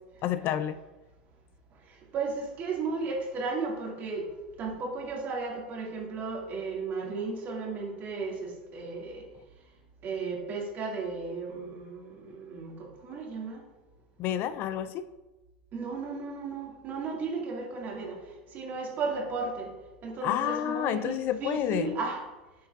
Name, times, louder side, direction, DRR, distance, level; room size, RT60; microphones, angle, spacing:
voice 1, 0.2-0.8 14.2-15.1 20.2-22.0, left 11 dB, 50° left, 12 dB, 0.5 m, -29 dB
voice 2, 2.1-4.3 4.6-9.2 10.0-13.6 15.7-18.2 18.5-19.7 20.0-22.2, right 4 dB, 45° right, -1 dB, 2.3 m, -34 dB
9.4 x 6.2 x 2.5 m, 1.1 s
hypercardioid pair, 95°, 5 cm